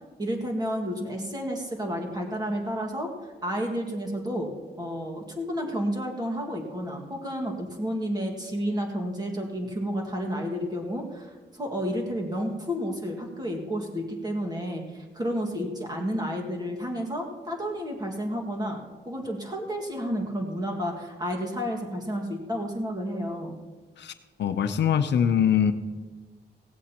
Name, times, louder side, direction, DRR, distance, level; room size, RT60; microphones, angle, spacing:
voice 1, 0.2-3.1 3.4-4.5 4.8-18.8 19.1-23.6, equal, 20° right, 1 dB, 1.9 m, -31 dB
voice 2, 24.4-25.7, left 8 dB, 70° left, 9 dB, 0.7 m, -23 dB
17.0 x 16.0 x 2.9 m, 1.3 s
wide cardioid pair, 165°, 19 cm